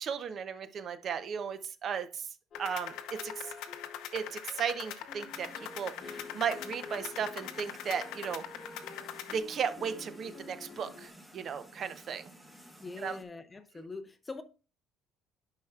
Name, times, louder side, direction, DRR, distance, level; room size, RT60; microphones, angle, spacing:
voice 1, 0.0-2.3 2.6-3.5 4.1-8.4 9.3-12.3 13.0-13.2, right 7 dB, 35° right, 0.5 m, -36 dB
sound 1, 2.5-9.4, left 11 dB, 70° left, 0.8 m, -43 dB
sound 2, 2.5-11.1, left 3 dB, 35° left, 0.9 m, -49 dB
sound 3, 5.3-13.2, right 1 dB, ahead, 1.0 m, -55 dB
voice 2, 12.8-14.4, left 3 dB, 15° left, 0.6 m, -43 dB
9.7 x 5.7 x 2.3 m
cardioid pair, 160°, 0 cm